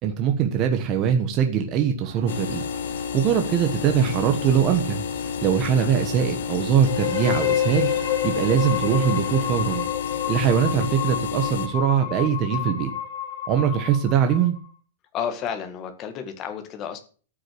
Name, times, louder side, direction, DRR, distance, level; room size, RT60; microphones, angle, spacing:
voice 1, 0.0-2.6 3.1-5.0 5.4-7.9 8.2-9.9 10.3-12.9 13.5-14.6, right 8 dB, 25° right, 5 dB, 1.2 m, -22 dB
sound 1, 2.0-9.7, right 8 dB, 50° right, 3.2 m, -44 dB
sound 2, 2.3-11.7, left 7 dB, 65° left, 1.3 m, -31 dB
sound 3, 6.8-14.6, left 10 dB, 45° left, 4.6 m, -29 dB
voice 2, 15.1-17.0, left 8 dB, 20° left, 6 dB, 1.9 m, -31 dB
13.5 x 6.3 x 7.9 m, 0.40 s
supercardioid pair, 175°, 0 cm